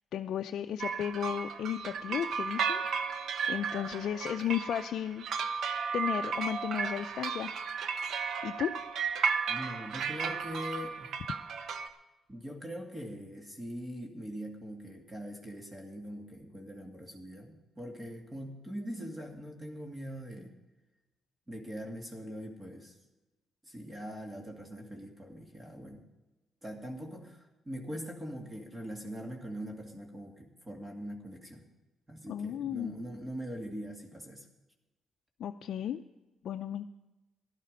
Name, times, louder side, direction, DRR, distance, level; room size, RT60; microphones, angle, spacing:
voice 1, 0.1-2.8 3.1-5.3 5.9-7.5 8.4-8.7 32.3-33.0 35.4-36.0 36.4-36.9, left 10 dB, 70° left, 5 dB, 0.5 m, -34 dB
sound 1, 0.8-11.9, right 5 dB, 65° right, 0.9 m, -34 dB
voice 2, 9.5-11.2 12.3-20.5 21.5-22.9 23.6-26.0 26.6-31.6 32.1-34.5, equal, 20° right, 2 dB, 2.2 m, -42 dB
15.0 x 12.0 x 5.3 m, 1.1 s
cardioid pair, 90°, 0 cm